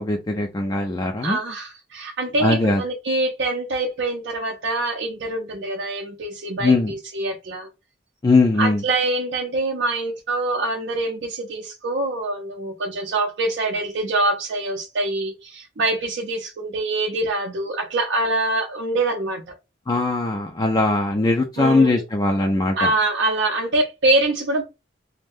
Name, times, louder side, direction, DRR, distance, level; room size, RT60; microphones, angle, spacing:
voice 1, 0.0-1.4 2.4-2.8 6.6-6.9 8.2-8.8 19.9-22.9, left 2 dB, 20° left, 0.3 m, -20 dB
voice 2, 1.2-7.7 8.6-19.5 21.6-22.0 22.8-24.7, right 2 dB, 70° right, 0.5 m, -24 dB
2.5 x 2.1 x 3.4 m
head